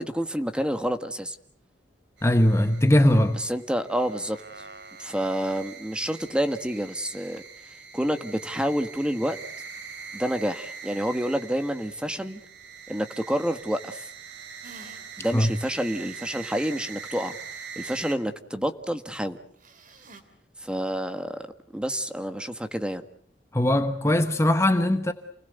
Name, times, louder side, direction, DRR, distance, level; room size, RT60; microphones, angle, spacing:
voice 1, 0.0-1.4 3.3-4.4 5.0-7.4 7.9-9.4 10.1-12.4 12.9-14.1 15.2-17.3 17.7-19.4 20.6-21.5 21.7-23.0, equal, 5° right, 1.6 m, -28 dB
voice 2, 2.2-3.5 15.3-15.5 23.5-25.1, left 1 dB, 15° left, 1.1 m, -20 dB
sound 1, 2.2-18.2, right 6 dB, 85° right, 2.9 m, -43 dB
sound 2, 14.6-15.3 15.8-15.9 19.6-20.2, right 3 dB, 50° right, 3.0 m, -48 dB
29.5 x 20.5 x 8.1 m
head